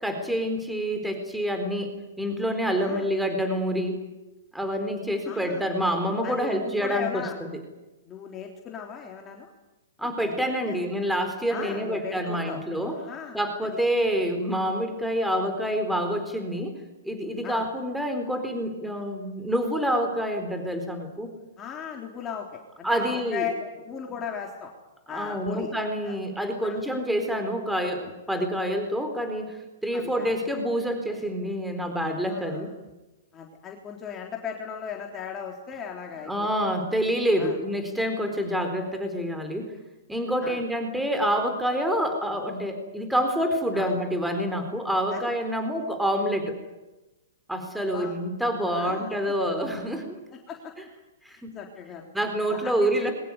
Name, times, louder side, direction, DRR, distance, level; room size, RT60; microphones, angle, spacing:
voice 1, 0.0-4.0 4.5-7.5 10.0-13.0 13.3-16.7 17.0-21.3 22.8-23.5 25.1-32.7 36.3-39.7 40.1-46.6 47.5-50.2 51.2-51.5 52.1-53.1, equal, ahead, 6 dB, 4.1 m, -27 dB
voice 2, 2.6-3.1 5.2-5.7 6.2-7.4 8.1-9.5 10.0-10.8 11.5-12.6 12.9-13.4 13.7-13.8 17.4-17.7 21.6-24.7 25.1-25.7 26.0-26.2 26.6-26.8 29.9-30.3 32.2-32.6 33.3-36.3 36.6-36.7 37.4-37.6 40.4-40.6 43.7-44.0 45.1-45.3 47.9-48.2 48.7-49.1 50.5-50.7 51.3-52.1 52.5-53.1, left 7 dB, 25° left, 1 dB, 3.6 m, -37 dB
23.0 x 19.5 x 9.7 m, 1.1 s
hypercardioid pair, 125°, 0 cm